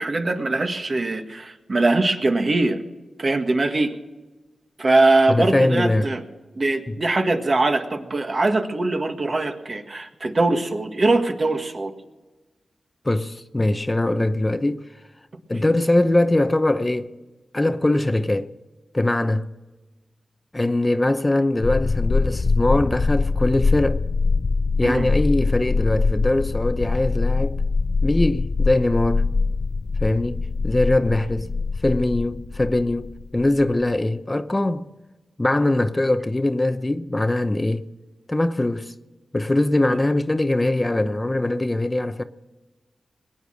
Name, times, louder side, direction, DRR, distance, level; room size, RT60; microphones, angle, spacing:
voice 1, 0.0-2.8 3.2-3.9 4.8-6.2 6.5-11.9 24.8-25.1 39.9-40.0, right 2 dB, 45° right, 1.7 m, -22 dB
voice 2, 5.3-6.1 6.9-7.0 13.0-14.9 15.5-17.1 17.5-18.5 18.9-19.5 20.5-24.0 24.8-27.6 28.0-29.2 30.0-31.5 31.8-34.9 35.4-37.9 38.3-38.9 39.3-42.2, left 1 dB, 20° left, 0.8 m, -22 dB
sound 1, 21.6-33.8, left 4 dB, 55° left, 0.4 m, -23 dB
21.0 x 8.8 x 6.3 m
cardioid pair, 60°, 0 cm